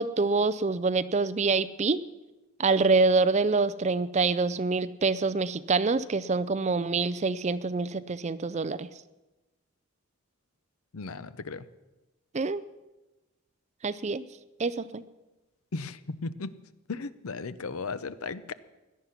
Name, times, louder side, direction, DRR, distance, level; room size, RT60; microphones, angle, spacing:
voice 1, 0.0-2.0 2.6-8.9 12.3-12.6 13.8-14.2 14.6-15.0, right 4 dB, 30° right, 16 dB, 0.5 m, -26 dB
voice 2, 10.9-11.6 15.7-16.5 16.9-18.5, left 4 dB, 85° left, 15 dB, 0.7 m, -36 dB
17.5 x 11.5 x 5.9 m, 1.1 s
head